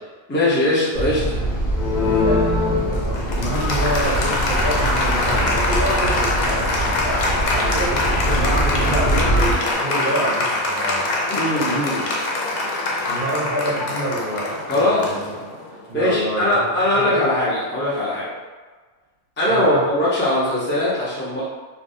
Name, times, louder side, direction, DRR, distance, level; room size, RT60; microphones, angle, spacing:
voice 1, 0.3-1.4 11.3-12.0 14.7-15.1 15.9-18.3 19.4-21.4, left 1 dB, 15° left, -9 dB, 0.5 m, -20 dB
sound 1, 0.9-9.5, right 1 dB, 50° left, 1.0 m, -24 dB
Applause, 1.7-15.8, left 2 dB, 85° left, 1.0 m, -23 dB
voice 2, 2.0-11.0 11.6-11.8 13.1-15.2 15.9-16.7 16.9-17.3 19.5-19.8, equal, 45° right, -10 dB, 0.7 m, -27 dB
sound 2, 3.1-9.7, left 1 dB, 70° left, 0.5 m, -37 dB
3.4 x 2.3 x 2.6 m, 1.4 s
omnidirectional pair, 1.5 m